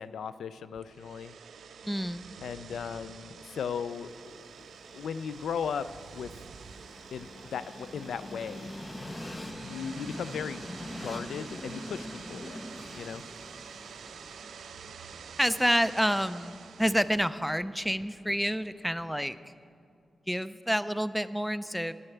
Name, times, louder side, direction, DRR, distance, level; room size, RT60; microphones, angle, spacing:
voice 1, 0.0-1.3 2.4-4.4 4.9-5.9 6.1-6.3 7.1-8.7 9.6-12.7 12.9-13.2, left 7 dB, 85° left, 14 dB, 0.3 m, -37 dB
sound 1, 0.7-17.3, right 6 dB, 80° right, 0.4 m, -48 dB
voice 2, 1.8-2.3 15.4-19.4 20.3-21.9, equal, ahead, 14 dB, 0.3 m, -28 dB
Train, 3.3-19.3, left 1 dB, 25° left, 0.7 m, -46 dB
10.5 x 6.5 x 8.4 m, 2.5 s
cardioid pair, 85°, 0 cm